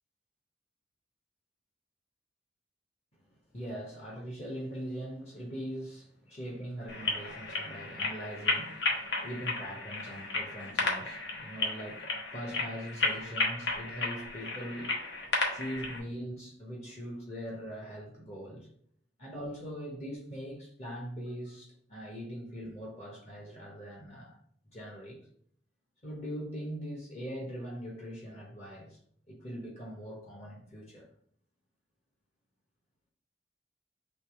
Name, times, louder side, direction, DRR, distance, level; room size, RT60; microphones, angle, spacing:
voice 1, 3.5-15.0 15.5-18.7 19.2-24.4 24.7-25.2 26.0-29.0 29.3-31.1, equal, 35° left, -1 dB, 0.8 m, -41 dB
sound 1, 6.9-16.0, left 3 dB, 70° left, 0.9 m, -33 dB
3.3 x 3.0 x 4.5 m, 0.63 s
head